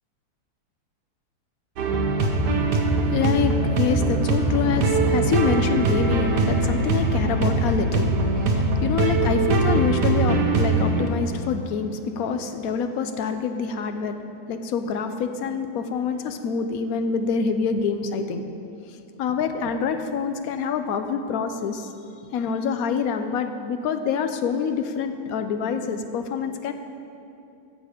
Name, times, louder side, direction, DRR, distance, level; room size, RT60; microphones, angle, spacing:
sound 1, 1.8-11.1, right 2 dB, 80° right, 1.6 m, -22 dB
voice 1, 2.4-18.4 18.9-21.9 22.3-26.7, left 5 dB, 65° left, 8 dB, 1.1 m, -26 dB
14.5 x 7.5 x 5.1 m, 2.6 s
omnidirectional pair, 1.8 m